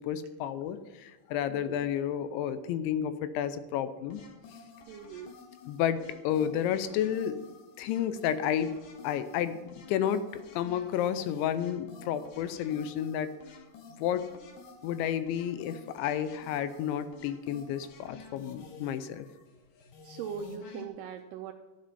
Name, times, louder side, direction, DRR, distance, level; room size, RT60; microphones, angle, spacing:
voice 1, 0.0-4.2 5.7-7.4 7.8-13.4 14.0-14.3 14.8-19.3, left 9 dB, 85° left, 12 dB, 3.0 m, -31 dB
voice 2, 1.5-1.8 4.9-5.3 20.0-21.5, right 7 dB, 85° right, 5 dB, 2.3 m, -40 dB
sound 1, 4.1-20.9, left 4 dB, 60° left, 2.9 m, -52 dB
13.0 x 7.9 x 5.4 m, 1.2 s
omnidirectional pair, 5.2 m